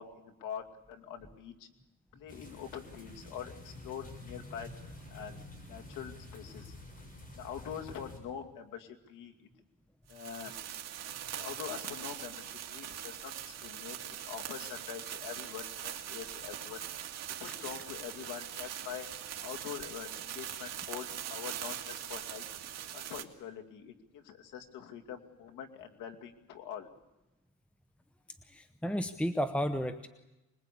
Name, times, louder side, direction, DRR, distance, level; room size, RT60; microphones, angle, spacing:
voice 1, 0.0-1.7 2.1-4.7 5.1-6.7 7.4-9.3 10.1-10.6 11.4-16.8 17.4-19.1 19.4-22.4 22.9-26.9, left 8 dB, 80° left, 4 dB, 2.5 m, -44 dB
sound 1, 2.3-8.2, left 2 dB, 25° left, 7.1 m, -49 dB
sound 2, 10.1-23.2, right 10 dB, 55° right, 2.1 m, -42 dB
voice 2, 28.5-30.1, equal, 5° left, 9 dB, 0.9 m, -32 dB
25.5 x 21.0 x 8.5 m, 0.97 s
cardioid pair, 115°, 31 cm